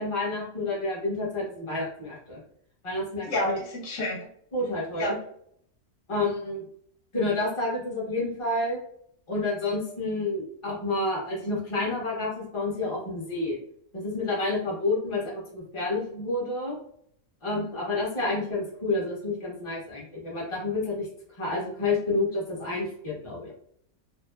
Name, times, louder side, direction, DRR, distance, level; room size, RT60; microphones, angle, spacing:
voice 1, 0.0-2.4 2.8-3.6 4.5-5.1 6.1-6.7 7.1-8.8 9.3-13.6 13.9-16.8 17.4-21.1 21.4-23.5, left 2 dB, 25° left, -5 dB, 0.8 m, -29 dB
voice 2, 3.3-4.3 5.0-5.1, left 1 dB, 65° left, -2 dB, 0.9 m, -29 dB
2.6 x 2.1 x 2.2 m, 0.67 s
omnidirectional pair, 1.5 m